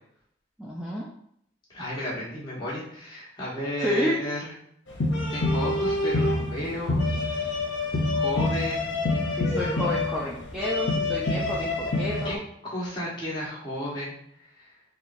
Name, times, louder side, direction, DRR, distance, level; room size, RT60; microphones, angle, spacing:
voice 1, 0.6-1.1 3.8-4.2 9.4-12.4, left 1 dB, 5° right, -6 dB, 0.3 m, -30 dB
voice 2, 1.7-4.5 5.3-7.5 8.1-9.0 12.2-12.4 12.6-14.2 14.6-14.7, left 1 dB, 25° left, -8 dB, 1.0 m, -33 dB
sound 1, 4.9-12.4, left 2 dB, 80° left, 0.6 m, -26 dB
3.2 x 2.3 x 2.5 m, 0.71 s
head